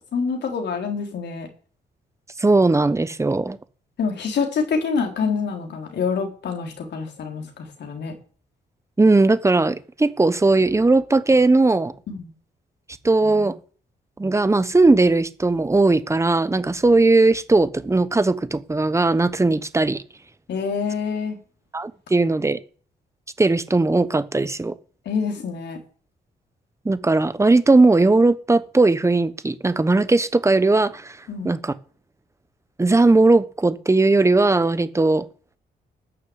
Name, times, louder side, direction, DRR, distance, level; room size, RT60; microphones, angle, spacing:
voice 1, 0.1-1.5 4.0-8.1 12.1-12.3 20.5-21.4 25.1-25.8 31.3-31.5, left 5 dB, 75° left, 3.7 m, -26 dB
voice 2, 2.4-3.6 9.0-11.9 13.0-13.5 14.2-20.0 21.7-22.6 23.4-24.7 26.8-31.2 31.4-31.7 32.8-35.2, right 3 dB, 15° right, 1.0 m, -18 dB
14.5 x 6.6 x 9.5 m
cardioid pair, 95°, 18 cm